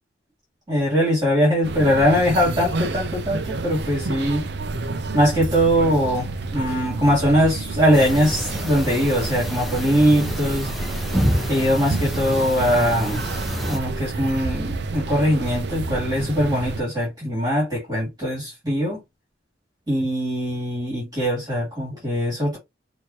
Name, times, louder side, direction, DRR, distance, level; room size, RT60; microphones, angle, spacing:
voice 1, 0.7-4.4 5.1-10.7 11.5-13.2 13.6-19.0 19.9-22.6, equal, 25° right, 2.9 m, -21 dB
sound 1, 1.6-16.8, right 3 dB, 65° right, 0.6 m, -29 dB
sound 2, 7.9-13.8, equal, ahead, 1.0 m, -28 dB
6.3 x 2.8 x 2.9 m
head